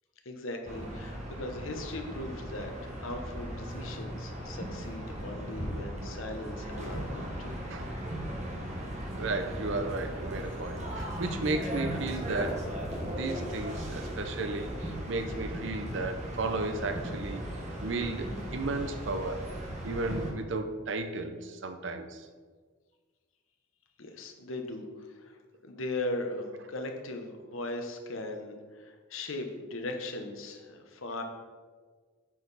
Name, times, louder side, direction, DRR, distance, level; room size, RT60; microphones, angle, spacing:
voice 1, 0.2-7.6 24.0-25.4 25.6-31.2, left 2 dB, 80° left, 4 dB, 0.9 m, -38 dB
sound 1, 0.7-20.3, equal, 35° right, 1.3 m, -37 dB
voice 2, 9.2-12.7 13.0-17.5 17.8-19.5 19.8-22.3, right 3 dB, 65° right, 8 dB, 0.6 m, -34 dB
8.2 x 4.6 x 4.0 m, 1.5 s
head